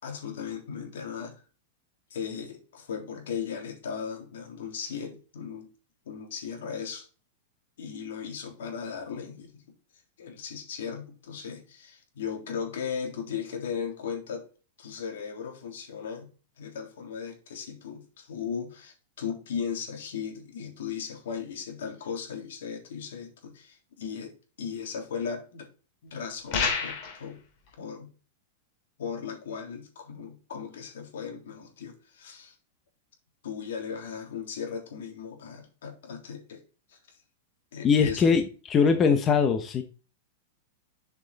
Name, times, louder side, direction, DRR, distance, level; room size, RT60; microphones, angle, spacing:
voice 1, 0.0-1.4 2.1-5.7 6.0-7.1 7.8-9.6 10.2-14.5 14.8-16.3 16.6-25.7 26.0-27.4 27.8-28.1 29.0-32.5 33.4-36.6 36.9-37.2 37.7-38.4, left 7 dB, 80° left, 2 dB, 3.4 m, -37 dB
sound 1, 26.5-27.2, left 5 dB, 40° left, 2.9 m, -28 dB
voice 2, 37.8-39.8, left 5 dB, 20° left, 6 dB, 0.9 m, -22 dB
7.6 x 6.1 x 4.1 m, 0.35 s
supercardioid pair, 155°, 0 cm